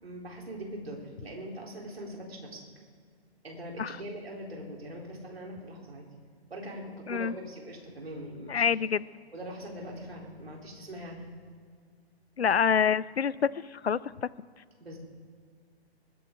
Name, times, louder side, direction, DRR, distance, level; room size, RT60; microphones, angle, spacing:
voice 1, 0.0-2.6 3.4-6.0 6.5-8.6 9.3-11.3 12.4-12.5 14.8-15.0, right 1 dB, 65° right, -1 dB, 4.1 m, -42 dB
voice 2, 8.5-9.1 12.4-14.3, left 7 dB, 75° left, 21 dB, 0.6 m, -27 dB
22.0 x 10.5 x 3.9 m, 2.1 s
figure-of-eight pair, 130°, 32 cm